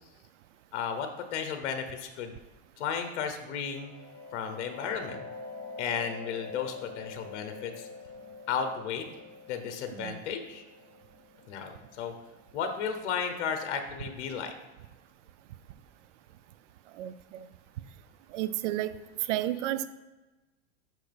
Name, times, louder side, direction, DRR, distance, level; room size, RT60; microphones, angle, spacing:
voice 1, 0.7-2.4 2.8-3.9 4.3-5.3 5.8-7.9 8.5-9.1 9.5-10.6 11.5-12.1 12.5-14.5, left 7 dB, 75° left, 7 dB, 0.9 m, -34 dB
sound 1, 3.5-13.0, left 4 dB, 35° left, 1.3 m, -46 dB
voice 2, 16.9-17.5 18.3-18.9 19.3-19.9, right 14 dB, 85° right, 14 dB, 0.5 m, -32 dB
6.3 x 6.1 x 3.4 m, 1.1 s
supercardioid pair, 135°, 35 cm